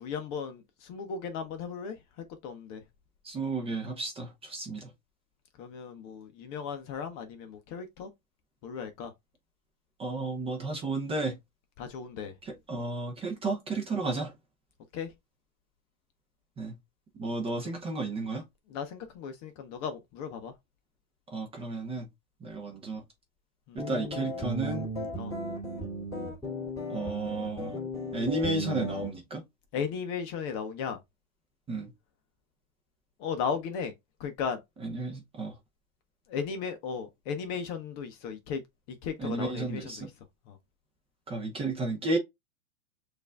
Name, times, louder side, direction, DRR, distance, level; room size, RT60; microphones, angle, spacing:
voice 1, 0.0-2.0 2.4-2.8 5.6-8.1 8.6-9.1 11.8-12.3 14.9-15.1 18.7-20.5 23.7-23.8 25.2-25.3 29.7-31.0 33.2-33.9 34.2-34.6 36.3-38.6 39.0-40.1 40.5-40.6, left 6 dB, 35° left, 0.6 m, -36 dB
voice 2, 3.2-4.9 10.0-11.4 12.4-14.3 16.6-16.7 17.2-18.4 21.3-22.1 22.4-23.0 23.7-24.9 26.9-27.8 28.1-29.4 31.7-31.9 34.8-35.5 39.2-40.1 41.3-42.2, right 2 dB, 15° right, 0.6 m, -33 dB
sound 1, 23.8-29.1, equal, 5° left, 2.1 m, -35 dB
6.4 x 2.5 x 2.2 m
hypercardioid pair, 135°, 41 cm